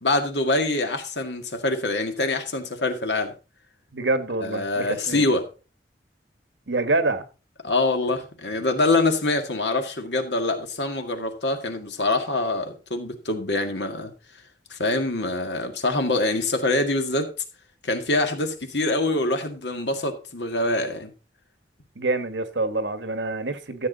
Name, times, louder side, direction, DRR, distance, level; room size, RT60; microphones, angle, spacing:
voice 1, 0.0-3.3 4.4-5.5 7.6-14.1 14.7-17.3 17.8-21.1, left 2 dB, 75° left, 2.0 m, -25 dB
voice 2, 3.9-5.2 6.7-7.2 21.9-23.9, right 2 dB, 85° right, 1.3 m, -26 dB
13.5 x 7.5 x 4.0 m
head